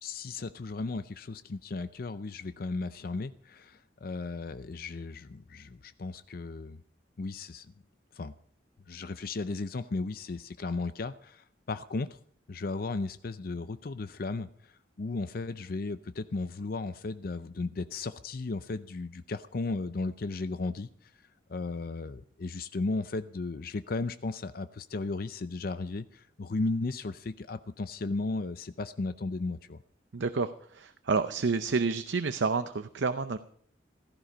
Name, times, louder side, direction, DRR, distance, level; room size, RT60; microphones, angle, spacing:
voice 1, 0.0-6.8 7.2-7.7 8.1-8.3 8.9-12.2 12.5-21.1 21.5-29.8, left 3 dB, 50° left, 12 dB, 0.5 m, -35 dB
voice 2, 30.1-33.4, right 4 dB, 75° right, 10 dB, 0.6 m, -29 dB
15.5 x 14.0 x 5.0 m, 0.62 s
head